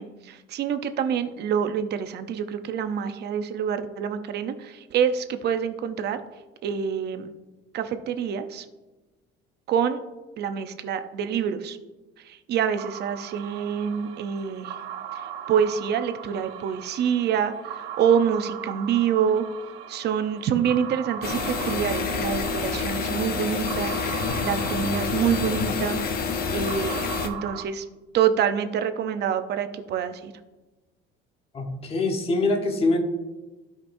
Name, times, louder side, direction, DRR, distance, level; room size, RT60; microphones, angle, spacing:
voice 1, 0.0-6.2 6.6-7.3 7.7-8.7 9.7-10.0 10.4-11.8 12.2-14.8 15.5-19.4 19.9-24.0 24.4-26.0 26.5-27.9 28.1-30.3, right 8 dB, 55° right, 9 dB, 0.7 m, -26 dB
sound 1, 12.8-27.7, right 9 dB, 90° right, 1.1 m, -39 dB
sound 2, 21.2-27.3, left 5 dB, 45° left, 0.8 m, -28 dB
voice 2, 31.5-33.0, left 2 dB, 30° left, 3 dB, 1.2 m, -24 dB
15.0 x 5.3 x 2.6 m, 1.1 s
cardioid pair, 140°, 20 cm